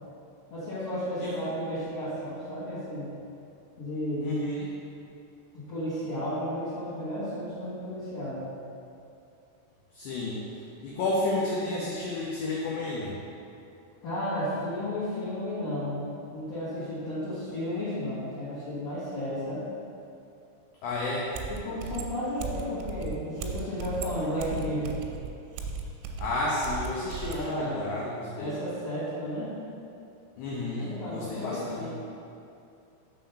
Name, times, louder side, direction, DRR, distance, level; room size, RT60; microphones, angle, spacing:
voice 1, 0.5-3.1 3.8-4.4 5.5-8.5 14.0-19.6 21.5-25.0 27.3-27.8 28.4-29.5 30.8-31.9, equal, 75° left, -14 dB, 1.4 m, -33 dB
voice 2, 4.2-4.7 9.9-10.4 10.8-13.2 20.8-21.3 26.0-28.5 30.4-31.9, left 2 dB, 90° left, -5 dB, 2.2 m, -31 dB
sound 1, 21.3-27.5, right 4 dB, 85° right, 3.0 m, -37 dB
6.6 x 3.7 x 5.5 m, 2.6 s
omnidirectional pair, 5.5 m